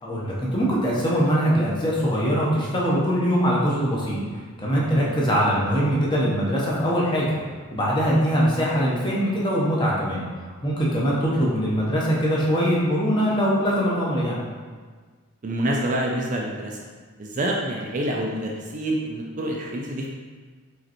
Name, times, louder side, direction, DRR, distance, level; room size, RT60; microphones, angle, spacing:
voice 1, 0.0-4.2 4.6-7.4 7.7-10.2 10.6-14.4, equal, 20° left, -5 dB, 0.8 m, -22 dB
voice 2, 15.4-16.8 17.2-20.1, right 1 dB, 35° right, -1 dB, 0.4 m, -27 dB
5.0 x 3.2 x 2.9 m, 1.5 s
head